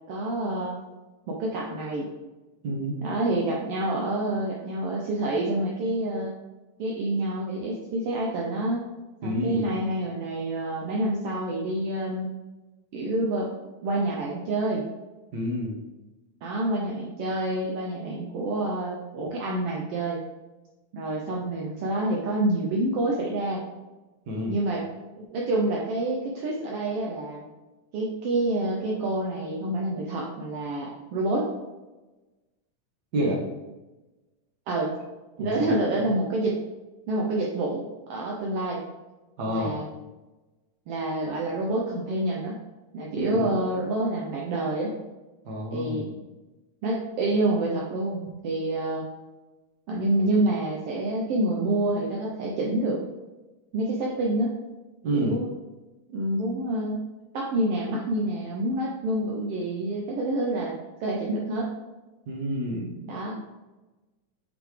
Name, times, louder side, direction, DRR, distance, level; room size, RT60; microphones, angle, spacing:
voice 1, 0.1-0.8 1.3-2.1 3.0-6.4 6.8-8.8 9.2-12.3 12.9-13.5 13.8-14.8 16.4-20.2 20.9-23.6 24.5-24.8 25.2-27.4 27.9-31.5 34.7-34.9 35.4-36.6 37.1-38.8 39.5-39.9 40.9-42.6 42.9-44.9 45.7-46.1 46.8-49.0 49.9-53.0 53.7-54.5 55.1-55.5 56.1-57.0 57.3-61.7 63.0-63.4, right 1 dB, 85° right, -3 dB, 1.3 m, -27 dB
voice 2, 2.6-2.9 9.2-9.7 15.3-15.7 24.3-24.6 33.1-33.4 35.4-36.0 39.4-39.7 43.1-43.5 45.4-46.1 55.0-55.4 62.3-62.9, equal, 55° right, -1 dB, 1.1 m, -29 dB
7.9 x 4.1 x 3.3 m, 1.1 s
omnidirectional pair, 3.6 m